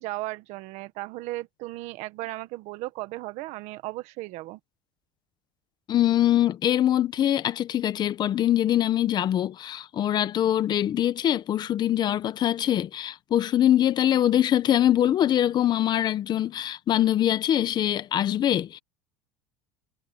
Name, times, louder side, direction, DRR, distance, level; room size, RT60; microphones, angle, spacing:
voice 1, 0.0-4.6, right 19 dB, 55° right, 1.6 m, -36 dB
voice 2, 5.9-18.8, left 11 dB, 30° left, 0.8 m, -23 dB
supercardioid pair, 145°, 14 cm